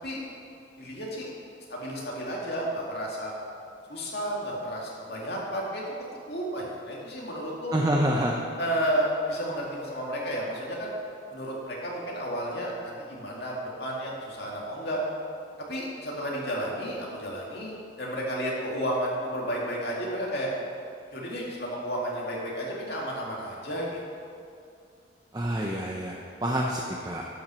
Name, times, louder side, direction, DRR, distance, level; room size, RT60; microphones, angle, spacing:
voice 1, 0.8-1.3 1.7-3.3 3.9-7.7 8.6-10.9 11.3-15.0 15.6-20.5 21.1-24.0, equal, 55° left, -3 dB, 2.3 m, -32 dB
voice 2, 7.7-8.3 25.3-27.2, right 1 dB, 20° right, -2 dB, 0.6 m, -27 dB
12.0 x 6.1 x 6.2 m, 2.4 s
head